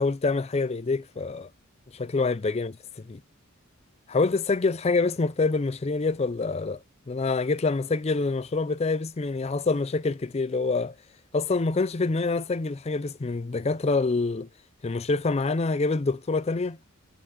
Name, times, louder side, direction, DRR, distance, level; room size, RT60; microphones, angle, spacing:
voice 1, 0.0-1.5 1.9-2.7 3.1-3.2 4.1-6.8 7.1-10.9 11.3-14.5 14.8-16.8, left 3 dB, 30° left, 0.4 m, -26 dB
8.5 x 4.8 x 3.6 m
head